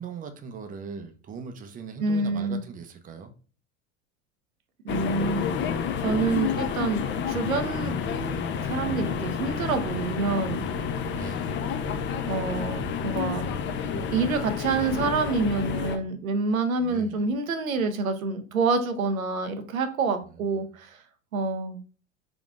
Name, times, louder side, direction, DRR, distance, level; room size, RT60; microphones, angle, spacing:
voice 1, 0.0-3.3 11.1-11.5 16.8-17.2 20.3-20.5, right 5 dB, 20° right, 0.6 m, -40 dB
voice 2, 2.0-2.6 4.8-5.5 6.0-8.0 8.6-10.7 12.3-13.4 14.0-21.0 21.3-21.8, right 4 dB, 90° right, 0.6 m, -27 dB
sound 1, 4.9-16.0, left 6 dB, 30° left, 0.5 m, -30 dB
3.8 x 3.6 x 2.4 m
hypercardioid pair, 85°, 40 cm